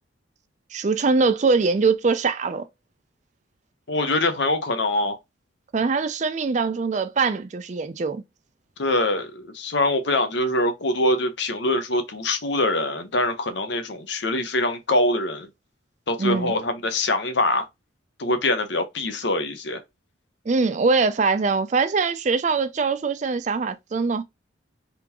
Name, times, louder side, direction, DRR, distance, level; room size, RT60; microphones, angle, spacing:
voice 1, 0.7-2.7 5.7-8.2 16.2-16.5 20.5-24.2, right 4 dB, 35° right, 0.4 m, -22 dB
voice 2, 3.9-5.2 8.8-15.5 16.1-17.7 18.2-19.8, left 2 dB, 65° left, 0.8 m, -24 dB
3.7 x 3.4 x 2.9 m
head